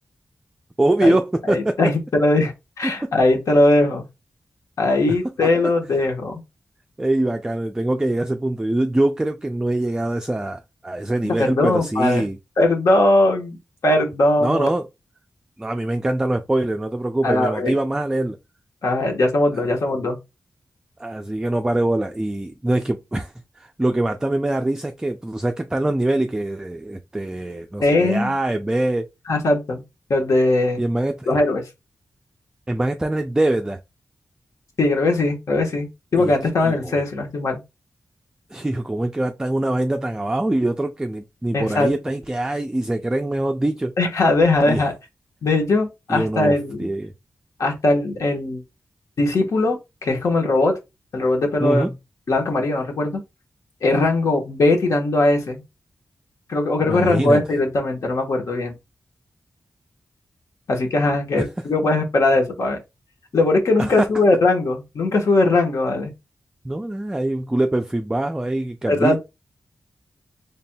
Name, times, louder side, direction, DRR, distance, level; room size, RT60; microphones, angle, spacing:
voice 1, 0.8-1.9 2.8-3.1 5.4-5.5 7.0-12.4 14.4-14.9 15.6-18.4 19.6-19.8 21.0-29.1 30.8-31.3 32.7-33.8 36.2-36.3 36.6-37.0 38.5-43.9 44.7-44.9 46.1-47.1 51.6-52.0 56.8-57.4 61.3-61.5 63.8-64.1 66.6-69.2, right 1 dB, 10° right, 0.3 m, -23 dB
voice 2, 1.5-2.5 2.8-4.1 4.8-6.4 11.4-12.3 12.6-13.6 13.8-14.7 17.2-17.7 18.8-20.2 27.8-28.3 29.3-29.8 30.1-30.8 31.3-31.6 34.8-37.6 41.5-41.9 44.0-44.9 45.4-46.9 47.6-48.6 49.2-50.7 51.1-51.9 52.3-53.2 53.8-55.6 56.5-58.7 60.7-62.8 63.3-66.1 68.9-69.2, left 2 dB, 75° left, 1.2 m, -20 dB
4.2 x 3.4 x 2.2 m
wide cardioid pair, 90°, 5 cm